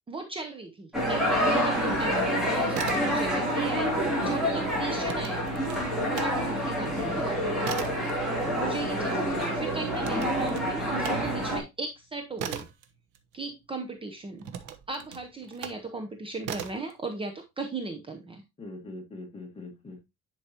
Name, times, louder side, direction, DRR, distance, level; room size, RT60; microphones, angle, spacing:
voice 1, 0.1-5.5 6.0-7.5 8.6-12.7 13.3-14.5 14.9-18.4, right 3 dB, 20° right, 4 dB, 0.7 m, -36 dB
sound 1, 0.9-11.6, equal, ahead, 3.1 m, -27 dB
sound 2, 2.7-3.6 3.8-6.3 6.7-13.8 14.4-15.9 16.4-16.9, right 8 dB, 80° right, 1.1 m, -39 dB
voice 2, 8.4-9.1 18.6-20.0, left 3 dB, 20° left, 2 dB, 1.9 m, -40 dB
10.0 x 4.8 x 2.9 m, 0.22 s
cardioid pair, 175°, 30 cm